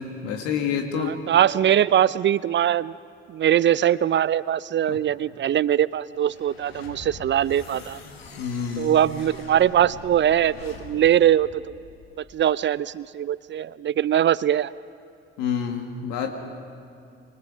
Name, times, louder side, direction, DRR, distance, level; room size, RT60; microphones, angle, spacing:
voice 1, 0.0-1.1 4.9-5.0 8.4-8.9 15.4-16.3, left 7 dB, 70° left, 4 dB, 1.8 m, -28 dB
voice 2, 1.0-2.9 3.3-8.0 8.8-11.8 12.3-14.7, right 10 dB, 40° right, 19 dB, 0.5 m, -21 dB
sound 1, 6.1-12.4, left 3 dB, 85° left, 1.6 m, -44 dB
27.0 x 25.0 x 5.1 m, 2.6 s
hypercardioid pair, 50°, 30 cm